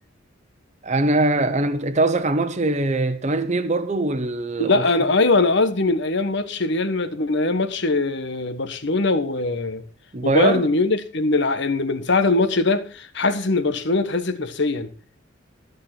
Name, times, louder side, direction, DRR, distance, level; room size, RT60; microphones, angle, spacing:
voice 1, 0.8-4.9 10.1-10.7, right 2 dB, 35° right, 1.0 m, -22 dB
voice 2, 4.6-9.8 10.2-14.9, left 3 dB, 60° left, 1.3 m, -21 dB
14.0 x 6.8 x 5.9 m
head